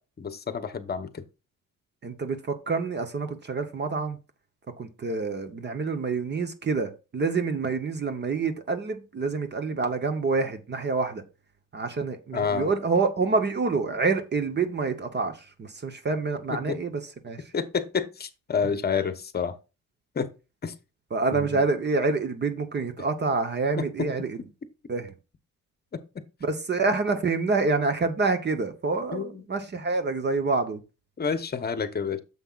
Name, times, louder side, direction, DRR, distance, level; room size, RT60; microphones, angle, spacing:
voice 1, 0.2-1.2 12.3-12.7 16.5-16.8 17.5-19.5 20.2-20.3 20.6-20.7 21.3-21.6 23.8-23.9 25.9-26.0 29.1-29.4 31.2-32.2, left 6 dB, 30° left, 0.9 m, -29 dB
voice 2, 2.0-4.2 4.8-11.2 11.7-17.4 21.1-24.4 24.9-25.1 26.4-30.8, right 4 dB, 30° right, 0.9 m, -27 dB
9.6 x 7.2 x 2.4 m
cardioid pair, 140°, 33 cm